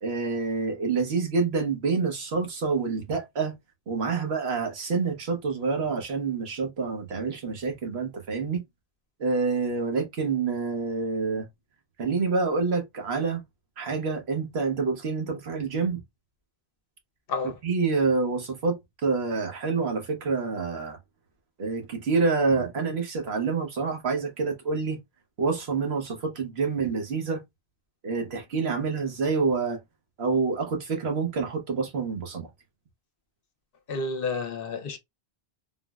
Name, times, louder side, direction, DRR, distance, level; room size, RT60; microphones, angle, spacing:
voice 1, 0.0-3.6 3.9-8.6 9.2-11.5 12.0-13.4 13.8-16.0 17.6-21.0 21.6-25.0 25.4-27.4 28.0-29.8 30.2-32.5, right 4 dB, 85° right, 1.2 m, -27 dB
voice 2, 33.9-35.0, left 4 dB, 65° left, 0.9 m, -30 dB
3.7 x 2.0 x 2.3 m
omnidirectional pair, 1.0 m